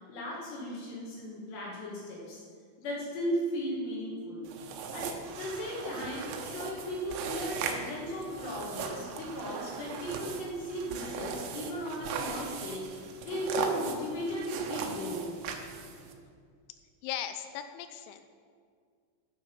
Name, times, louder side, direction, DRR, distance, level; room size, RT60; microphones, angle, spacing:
voice 1, 0.1-2.4 2.8-4.4 4.9-15.4, equal, 65° left, -4 dB, 3.6 m, -36 dB
sound 1, 4.5-16.1, right 5 dB, 85° right, 3.5 m, -38 dB
voice 2, 17.0-18.3, left 10 dB, 85° left, 9 dB, 3.0 m, -38 dB
10.0 x 9.0 x 6.8 m, 2.1 s
omnidirectional pair, 5.7 m